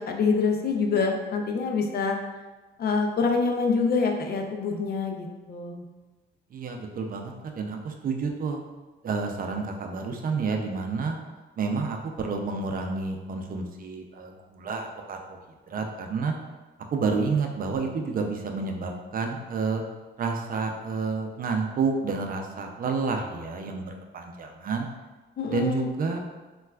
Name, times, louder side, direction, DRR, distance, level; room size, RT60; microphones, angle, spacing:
voice 1, 0.0-2.2 2.8-5.8 25.4-25.9, left 4 dB, 55° left, 3 dB, 0.5 m, -26 dB
voice 2, 6.5-8.6 9.0-11.2 11.6-15.4 15.7-16.3 16.9-19.8 20.2-24.9 25.5-26.2, right 4 dB, 45° right, 3 dB, 0.4 m, -29 dB
4.0 x 2.3 x 2.2 m, 1.2 s
cardioid pair, 90°, 20 cm